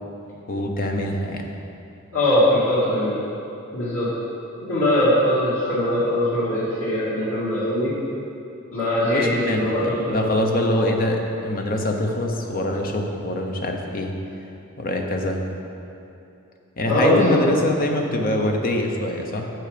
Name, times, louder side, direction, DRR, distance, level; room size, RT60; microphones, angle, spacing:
voice 1, 0.5-1.5 9.0-14.2 14.8-15.4 16.8-19.5, left 1 dB, 40° left, 2 dB, 0.8 m, -24 dB
voice 2, 2.1-3.1 3.7-4.1 4.7-7.9 8.7-10.8 16.9-17.4, left 1 dB, 90° left, -10 dB, 2.2 m, -21 dB
7.6 x 7.3 x 5.1 m, 2.8 s
head